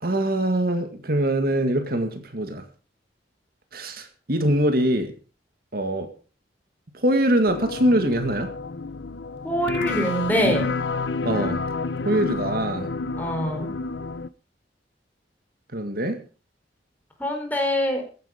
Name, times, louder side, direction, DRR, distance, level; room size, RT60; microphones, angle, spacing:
voice 1, 0.0-2.6 3.7-5.1 5.7-6.1 6.9-8.5 11.2-11.7 12.0-12.9 15.7-16.2, right 1 dB, 55° right, 7 dB, 2.0 m, -23 dB
sound 1, 7.5-14.3, left 4 dB, 80° left, 0.8 m, -29 dB
voice 2, 9.4-10.7 13.2-13.7 17.2-18.0, equal, 10° left, 3 dB, 4.3 m, -24 dB
15.0 x 11.0 x 5.2 m, 0.37 s
head